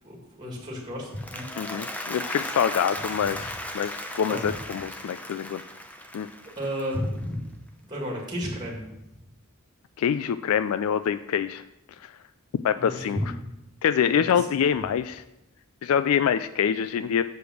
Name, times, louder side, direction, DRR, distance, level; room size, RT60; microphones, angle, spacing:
voice 1, 0.0-1.5 4.3-4.5 6.6-7.4 7.8-9.0 12.7-13.5 14.1-14.5, equal, 20° right, -2 dB, 2.0 m, -32 dB
Applause, 1.0-7.3, left 1 dB, 5° left, 0.6 m, -37 dB
voice 2, 1.6-5.6 6.1-6.3 10.0-11.6 12.0-12.1 12.6-13.2 13.8-15.2 15.8-17.2, left 8 dB, 75° left, 13 dB, 0.3 m, -25 dB
6.9 x 5.1 x 6.2 m, 0.89 s
head